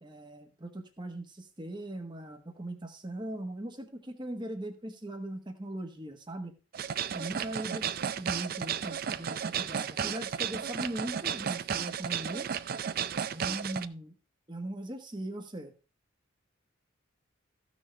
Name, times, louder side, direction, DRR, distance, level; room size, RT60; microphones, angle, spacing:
voice 1, 0.0-6.5 7.1-7.9 8.2-12.5 13.3-14.1 14.5-15.7, right 1 dB, 20° right, 5 dB, 1.3 m, -39 dB
sound 1, 6.7-13.9, right 8 dB, 45° right, 0.4 m, -33 dB
14.5 x 6.4 x 3.3 m, 0.32 s
head